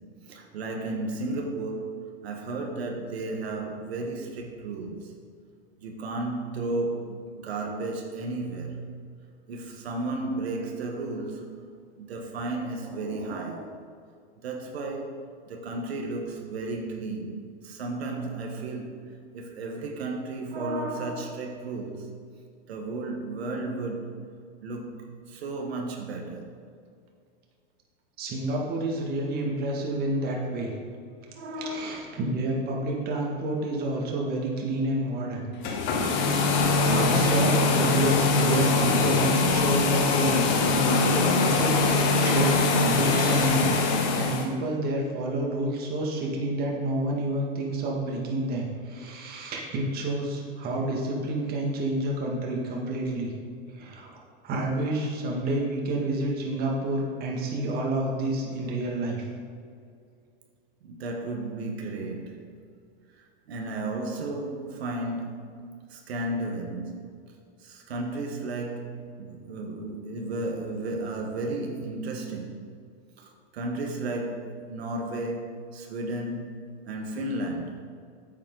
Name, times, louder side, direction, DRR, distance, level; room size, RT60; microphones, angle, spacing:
voice 1, 0.2-5.1 5.8-8.9 9.5-11.5 11.9-13.8 14.4-17.4 17.6-22.1 22.7-24.2 24.6-26.5 31.4-32.2 60.8-62.6 63.2-67.1 67.6-72.6 73.2-76.6 76.8-77.8, right 2 dB, 85° right, 2 dB, 1.4 m, -33 dB
voice 2, 28.2-30.7 31.7-35.5 35.9-36.2 36.9-43.7 44.1-53.3 53.7-54.1 54.4-59.2, right 1 dB, 30° right, -2 dB, 1.9 m, -29 dB
sound 1, 35.5-44.5, left 3 dB, 40° left, 1.3 m, -22 dB
8.8 x 7.4 x 3.9 m, 2.2 s
supercardioid pair, 140°, 30 cm